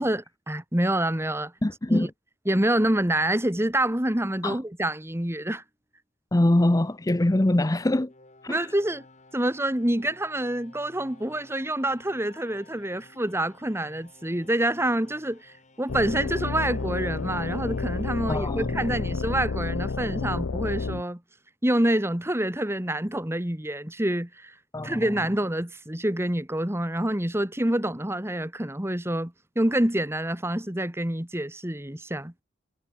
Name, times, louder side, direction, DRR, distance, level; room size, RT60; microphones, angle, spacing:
voice 1, 0.0-1.5 1.9-2.1 2.5-5.6 8.5-9.0 9.3-21.2 21.6-24.5 24.8-32.3, right 1 dB, 15° right, 1.8 m, -27 dB
voice 2, 1.6-2.1 4.4-4.6 6.3-8.1 8.4-8.7 18.3-18.7 24.7-25.0, left 1 dB, 20° left, 0.6 m, -23 dB
sound 1, 6.6-19.7, left 2 dB, 35° left, 6.1 m, -56 dB
sound 2, 15.9-21.0, left 4 dB, 80° left, 0.7 m, -30 dB
head